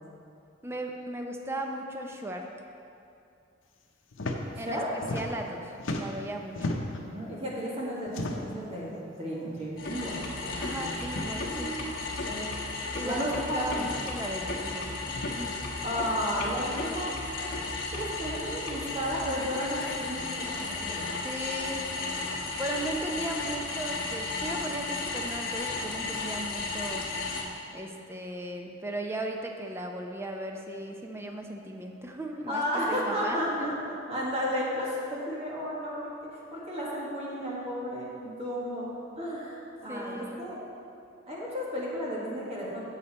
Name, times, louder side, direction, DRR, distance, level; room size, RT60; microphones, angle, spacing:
voice 1, 0.6-2.5 4.6-4.8 5.1-6.7 10.6-11.7 12.9-14.9 15.4-15.6 21.2-22.0 22.6-27.0 27.7-32.6 32.9-33.7 39.9-40.4, right 1 dB, 15° right, 2 dB, 0.6 m, -36 dB
sound 1, 4.1-4.4 4.7-5.5 5.8-7.1 8.1-8.6 9.5-9.7 10.0-10.1 11.0-11.3 12.5-12.6 13.7-14.0 15.1-15.3, left 2 dB, 75° left, 0.8 m, -35 dB
voice 2, 4.5-4.9 7.0-8.9 9.2-10.2 10.5-11.0 11.5-12.0 12.2-12.4 13.0-13.8 15.8-17.1 17.9-21.0 32.5-33.7 34.1-36.1 36.5-38.9 39.2-40.6 41.3-42.9, equal, 30° right, -6 dB, 1.6 m, -33 dB
sound 2, 9.8-27.4, left 3 dB, 50° left, 1.2 m, -34 dB
8.1 x 7.0 x 4.2 m, 2.6 s
head